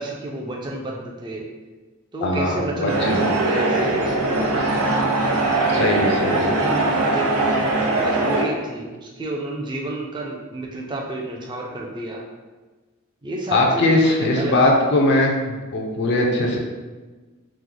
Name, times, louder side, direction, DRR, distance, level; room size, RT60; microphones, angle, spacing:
voice 1, 0.0-1.4 2.1-4.5 5.7-12.2 13.2-14.6, right 1 dB, 20° right, -1 dB, 0.4 m, -30 dB
voice 2, 2.2-3.3 5.7-6.4 13.5-16.6, left 2 dB, 55° left, 0 dB, 0.5 m, -20 dB
sound 1, 2.9-8.4, right 2 dB, 85° right, 0.5 m, -21 dB
3.0 x 2.1 x 3.8 m, 1.3 s
head